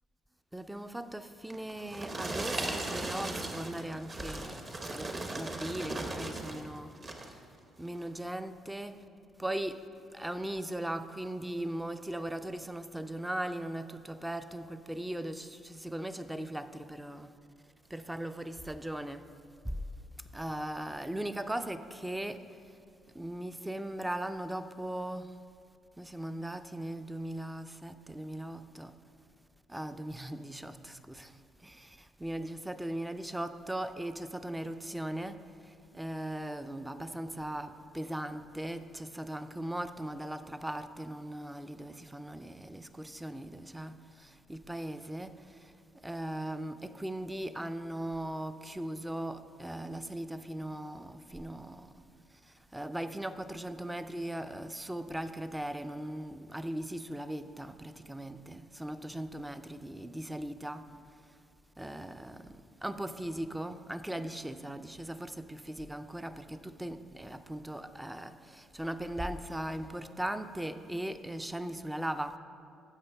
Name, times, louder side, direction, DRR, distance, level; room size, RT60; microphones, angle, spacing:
voice 1, 0.5-7.0 7.8-9.0 9.4-9.8 10.1-17.3 17.9-19.3 19.6-19.8 20.3-22.4 23.1-25.3 26.0-28.9 29.7-45.7 46.0-51.9 52.5-60.9 61.8-72.4, right 1 dB, 10° right, 0.4 m, -39 dB
sound 1, 1.5-6.6 7.0-7.4 8.0-8.1, right 2 dB, 30° right, 0.8 m, -37 dB
14.5 x 5.4 x 3.4 m
cardioid pair, 100°, 0 cm